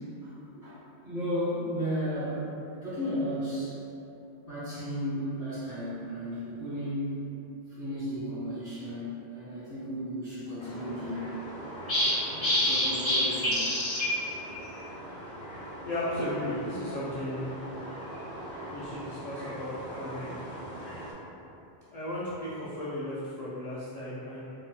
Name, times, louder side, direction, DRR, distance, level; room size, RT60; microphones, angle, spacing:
voice 1, 0.2-3.8 4.5-7.2 7.8-11.3 12.1-13.6, equal, 45° right, -12 dB, 1.7 m, -34 dB
sound 1, 10.6-21.1, left 1 dB, 30° left, 0.8 m, -32 dB
voice 2, 15.8-17.5 18.7-20.3 21.9-24.4, left 1 dB, 50° left, -8 dB, 0.5 m, -35 dB
4.0 x 2.8 x 2.2 m, 2.8 s
omnidirectional pair, 1.1 m